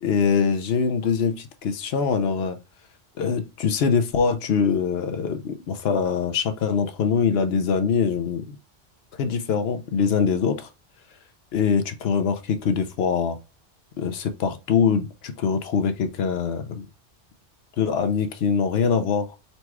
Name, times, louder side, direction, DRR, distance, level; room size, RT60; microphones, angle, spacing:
voice 1, 0.0-2.6 3.2-8.6 9.2-10.7 11.5-13.4 14.0-16.8 17.8-19.3, left 6 dB, 70° left, 0.9 m, -23 dB
4.1 x 2.3 x 4.5 m
omnidirectional pair, 1.1 m